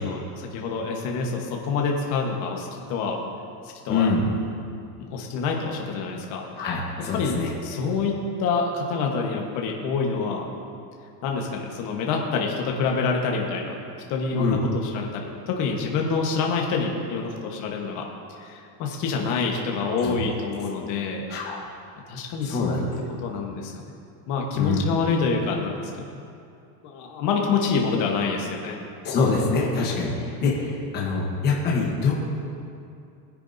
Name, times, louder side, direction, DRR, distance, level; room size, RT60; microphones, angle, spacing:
voice 1, 0.0-3.2 3.8-4.1 5.0-6.4 7.1-8.1 8.4-10.4 11.2-13.8 14.1-18.0 18.4-21.2 22.1-22.9 23.2-23.8 24.3-26.2 26.8-28.8, left 4 dB, 35° left, 0 dB, 1.3 m, -27 dB
voice 2, 3.9-4.3 6.6-7.5 14.4-14.6 20.0-20.2 21.3-21.6 22.5-22.8 24.5-24.8 29.0-32.1, left 4 dB, 20° left, -3 dB, 1.2 m, -24 dB
18.5 x 9.9 x 2.7 m, 2.5 s
supercardioid pair, 165°, 48 cm